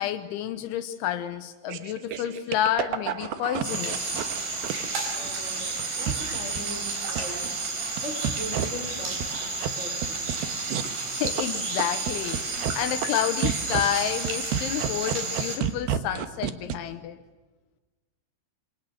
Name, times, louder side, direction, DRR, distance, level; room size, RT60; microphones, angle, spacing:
voice 1, 0.0-4.3 10.8-17.2, left 11 dB, 80° left, 9 dB, 3.2 m, -30 dB
sound 1, 1.7-5.3 5.7-6.9 7.2-8.0 8.2-8.6 9.1-9.7 10.0-10.9 11.2-12.7 13.0-13.1 13.4-16.8, right 9 dB, 70° right, 2.5 m, -30 dB
sound 2, 3.6-15.6, right 3 dB, 50° right, 5.5 m, -31 dB
voice 2, 5.1-7.6 8.0-10.3, equal, 15° right, 1 dB, 4.3 m, -40 dB
27.5 x 25.0 x 6.4 m, 1.3 s
omnidirectional pair, 5.6 m